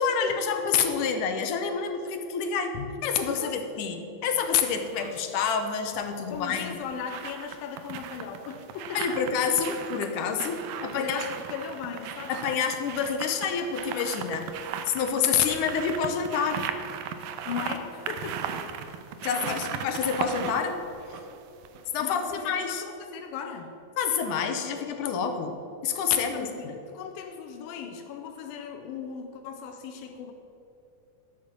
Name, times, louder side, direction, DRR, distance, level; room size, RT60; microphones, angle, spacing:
voice 1, 0.0-6.8 8.9-11.2 12.3-14.5 14.9-16.7 19.2-20.8 21.9-22.8 24.0-25.6 25.8-26.8, left 6 dB, 75° left, 6 dB, 2.2 m, -28 dB
voice 2, 3.4-3.9 6.3-9.3 11.0-12.7 17.5-19.7 20.1-20.3 22.0-23.8 26.1-30.3, left 7 dB, 90° left, 5 dB, 2.6 m, -38 dB
sound 1, 4.5-5.2 6.4-22.0 22.3-22.4, right 8 dB, 80° right, 2.4 m, -37 dB
11.5 x 7.5 x 7.5 m, 2.8 s
omnidirectional pair, 4.1 m